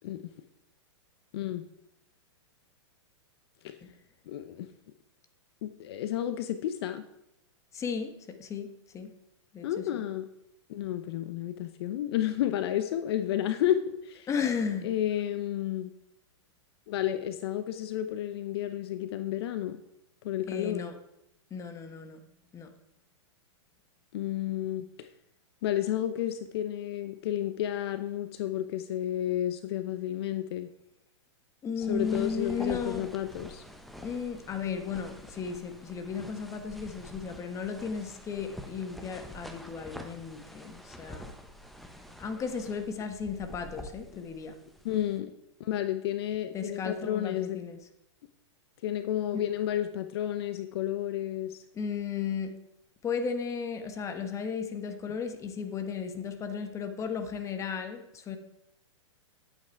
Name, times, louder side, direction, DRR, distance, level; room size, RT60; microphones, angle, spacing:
voice 1, 1.3-1.6 3.6-3.8 4.3-4.7 5.6-7.0 9.6-10.3 10.7-14.3 14.8-15.9 16.9-19.8 20.2-20.8 24.1-25.1 25.6-30.7 31.8-33.6 34.6-34.8 44.1-44.3 44.8-45.3 45.6-47.6 48.8-51.6, left 12 dB, 55° left, 10 dB, 0.8 m, -31 dB
voice 2, 7.7-9.1 9.5-9.8 14.3-14.9 20.5-20.9 21.5-22.2 22.5-22.7 31.6-33.1 34.0-41.3 42.2-44.6 46.5-47.8 49.3-49.4 51.7-52.5 53.0-58.4, left 6 dB, 20° left, 7 dB, 1.3 m, -35 dB
sound 1, 31.8-45.2, equal, ahead, 0.9 m, -47 dB
10.5 x 8.7 x 4.6 m, 0.83 s
hypercardioid pair, 130°, 16 cm